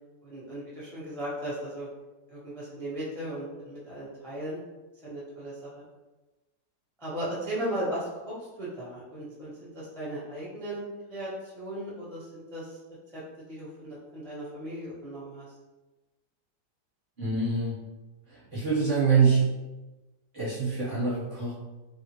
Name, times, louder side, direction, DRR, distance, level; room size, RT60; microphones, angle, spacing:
voice 1, 0.2-1.9 2.3-4.6 5.0-5.8 7.0-10.8 11.1-12.8 13.1-13.2 13.5-15.5, right 1 dB, 5° left, -9 dB, 0.4 m, -36 dB
voice 2, 17.2-17.8 18.3-19.4 20.3-21.5, right 5 dB, 35° right, -9 dB, 1.0 m, -25 dB
3.6 x 2.1 x 2.8 m, 1.1 s
omnidirectional pair, 1.8 m